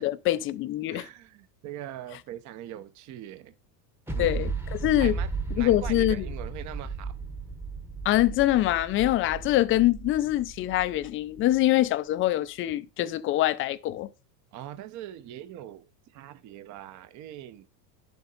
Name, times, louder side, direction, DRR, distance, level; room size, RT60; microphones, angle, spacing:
voice 1, 0.0-1.1 4.2-5.2 5.6-6.3 8.0-14.1, left 15 dB, 25° left, 0.4 m, -24 dB
voice 2, 0.9-3.5 4.1-4.3 5.0-5.3 5.5-7.1 14.5-15.9 16.1-17.7, right 12 dB, 35° right, 0.8 m, -41 dB
sound 1, 4.1-11.6, right 4 dB, 5° right, 0.9 m, -35 dB
10.5 x 7.1 x 3.9 m
supercardioid pair, 145°, 50 cm